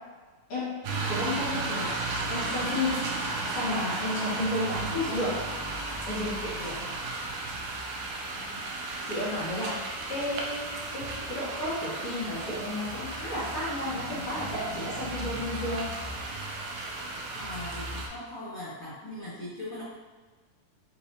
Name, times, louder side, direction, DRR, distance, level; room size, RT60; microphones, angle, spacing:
voice 1, 0.5-0.8 1.1-2.0 2.3-3.0 3.5-5.4 6.1-6.8 9.1-15.9, left 1 dB, 70° left, -9 dB, 1.4 m, -32 dB
sound 1, 0.8-18.1, right 2 dB, 85° right, 1.7 m, -34 dB
voice 2, 17.3-19.8, left 1 dB, 90° left, -11 dB, 1.2 m, -40 dB
5.4 x 3.1 x 2.7 m, 1.4 s
omnidirectional pair, 4.1 m